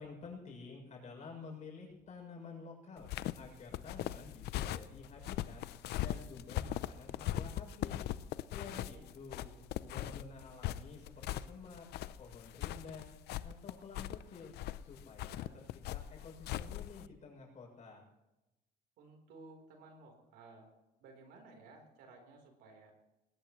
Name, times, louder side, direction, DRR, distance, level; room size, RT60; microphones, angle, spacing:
voice 1, 0.0-3.1 3.4-5.6 6.0-8.0 8.5-9.4 9.8-11.9 12.2-13.1 13.4-14.5 14.8-15.6 15.9-18.0, left 4 dB, 45° left, -1 dB, 7.0 m, -50 dB
sound 1, 3.0-17.1, left 13 dB, 75° left, 0.6 m, -40 dB
voice 2, 8.6-9.7 19.0-20.7 21.0-22.9, right 3 dB, 85° right, 3 dB, 4.0 m, -57 dB
20.5 x 18.0 x 3.2 m, 0.99 s
cardioid pair, 110°, 17 cm